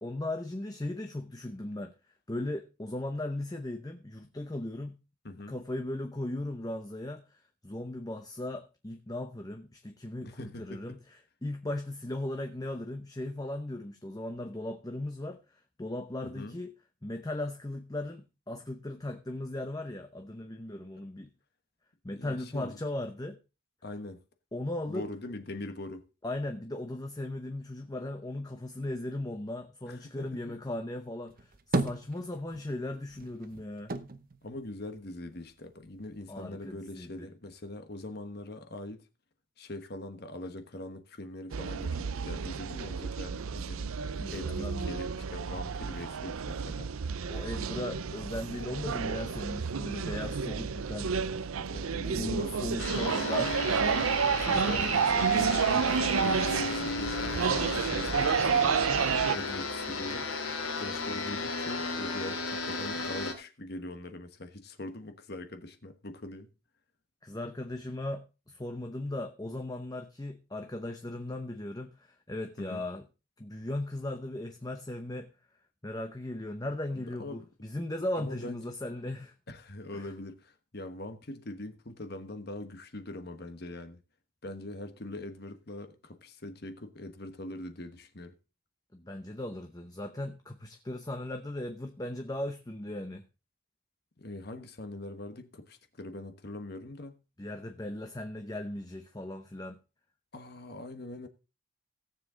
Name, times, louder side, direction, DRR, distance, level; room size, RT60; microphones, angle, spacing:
voice 1, 0.0-1.9 2.3-5.0 5.5-11.0 11.4-15.4 15.8-16.7 17.0-21.3 22.0-23.4 24.5-25.0 26.2-33.9 36.3-37.3 44.2-45.0 47.3-51.1 52.0-53.7 54.5-54.8 67.2-73.1 73.4-75.3 75.8-79.3 79.9-80.1 88.9-93.3 97.4-99.8, left 1 dB, 20° left, 0.7 m, -37 dB
voice 2, 5.2-5.6 10.2-11.0 16.2-16.6 22.2-22.8 23.8-24.2 24.9-26.1 29.9-30.5 34.4-39.1 39.6-44.0 44.3-46.9 51.5-53.0 54.4-66.5 72.6-72.9 76.9-77.5 78.2-78.6 79.5-84.0 84.4-88.3 94.2-97.2 100.3-101.3, left 1 dB, 50° left, 1.2 m, -42 dB
sound 1, 31.3-32.8 33.1-35.5 35.8-36.7, right 2 dB, 40° right, 0.8 m, -35 dB
sound 2, 41.5-59.4, right 6 dB, 80° right, 0.5 m, -30 dB
sound 3, 52.8-63.3, left 3 dB, 80° left, 2.7 m, -34 dB
17.0 x 7.3 x 3.8 m
head